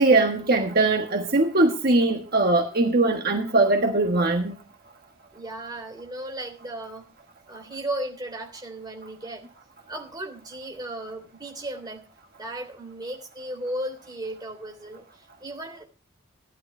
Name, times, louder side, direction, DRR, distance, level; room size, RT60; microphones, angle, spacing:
voice 1, 0.0-4.5, right 2 dB, 50° right, 3 dB, 1.4 m, -21 dB
voice 2, 5.3-7.1 7.5-9.4 9.9-12.1 12.4-15.8, right 1 dB, 20° right, 2 dB, 3.4 m, -35 dB
17.0 x 11.5 x 3.3 m, 0.34 s
head